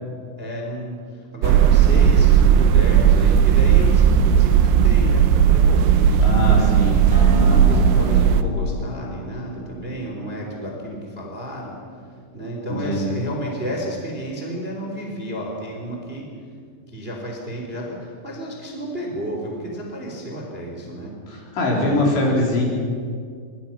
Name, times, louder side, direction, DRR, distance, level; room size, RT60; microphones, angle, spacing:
voice 1, 0.4-11.8 12.3-16.3 16.9-21.1 21.7-22.2, right 1 dB, 15° right, 0 dB, 3.0 m, -32 dB
sound 1, 1.4-8.4, right 8 dB, 80° right, 3.3 m, -15 dB
voice 2, 6.2-7.1 7.3-7.6 12.8-13.1 21.3-22.6, left 1 dB, 60° left, -2 dB, 6.4 m, -22 dB
Acoustic guitar, 7.1-12.3, left 2 dB, 15° left, 7.4 m, -33 dB
25.5 x 23.5 x 5.9 m, 2.1 s
omnidirectional pair, 5.8 m